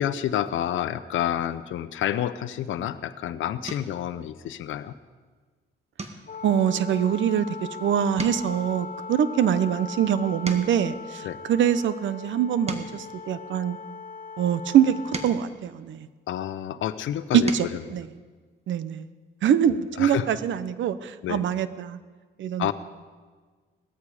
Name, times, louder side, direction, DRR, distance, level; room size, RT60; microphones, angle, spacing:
voice 1, 0.0-4.9 11.2-11.4 16.3-17.5 20.0-20.4 21.2-21.4 22.6-22.7, left 11 dB, 75° left, 13 dB, 0.8 m, -29 dB
sound 1, 2.8-3.1 3.6-4.1 4.6-4.9 5.2-5.4 5.9-7.8 8.0-11.0 11.6-14.1 14.7-16.6 17.1-17.8 19.2-19.3 19.6-19.8, right 3 dB, 30° right, 1.7 m, -40 dB
Wind instrument woodwind instrument, 6.3-15.4, left 5 dB, 45° left, 1.0 m, -39 dB
voice 2, 6.4-13.8 14.4-16.1 17.3-18.1 18.7-19.1 19.4-22.0 22.4-22.7, right 9 dB, 70° right, 14 dB, 0.9 m, -24 dB
19.0 x 13.5 x 5.0 m, 1.4 s
cardioid pair, 90°, 20 cm